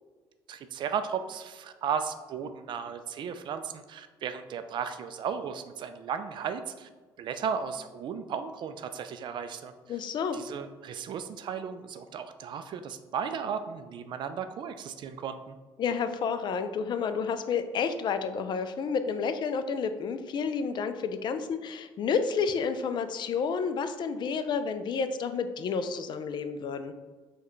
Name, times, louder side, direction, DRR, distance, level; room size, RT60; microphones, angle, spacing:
voice 1, 0.5-6.9 7.2-10.0 10.3-15.6, right 7 dB, 50° right, 9 dB, 0.3 m, -35 dB
voice 2, 9.9-10.4 15.8-26.9, left 5 dB, 50° left, 10 dB, 0.3 m, -30 dB
4.4 x 2.2 x 3.1 m, 1.3 s
hypercardioid pair, 65°, 10 cm